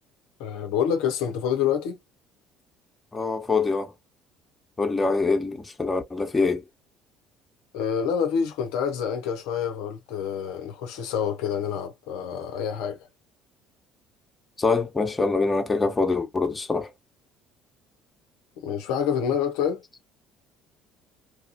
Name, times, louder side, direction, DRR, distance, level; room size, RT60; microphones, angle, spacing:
voice 1, 0.4-2.0 7.7-13.1 18.6-19.8, left 8 dB, 70° left, 0.5 m, -27 dB
voice 2, 3.1-3.9 4.8-6.6 14.6-16.9, left 3 dB, 20° left, 0.9 m, -24 dB
3.0 x 2.3 x 2.6 m
hypercardioid pair, 60°, 0 cm